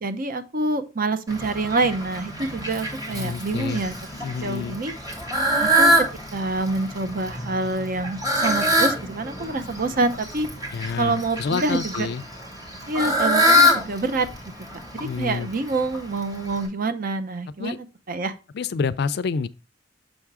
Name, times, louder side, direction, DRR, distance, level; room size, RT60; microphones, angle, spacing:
voice 1, 0.0-3.9 4.4-4.9 5.6-5.9 6.3-10.5 11.0-12.1 12.9-14.3 15.0-18.3, right 3 dB, 50° right, 0.7 m, -26 dB
Fowl, 1.3-16.7, equal, 20° right, 2.0 m, -25 dB
voice 2, 3.1-3.8 4.1-4.8 10.7-12.2 14.9-15.5 17.6-17.8 18.5-19.5, left 5 dB, 60° left, 0.4 m, -28 dB
6.3 x 3.6 x 4.7 m
head